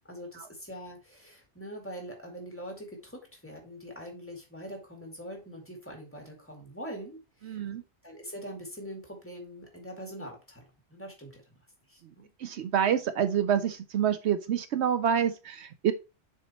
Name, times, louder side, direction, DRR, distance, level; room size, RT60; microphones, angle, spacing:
voice 1, 0.1-7.7 8.0-10.6 10.9-11.4 11.9-12.3, equal, 10° left, 2 dB, 2.0 m, -43 dB
voice 2, 7.4-7.8 12.0-15.9, right 8 dB, 70° right, 12 dB, 0.9 m, -28 dB
6.9 x 4.6 x 4.3 m, 0.29 s
omnidirectional pair, 1.2 m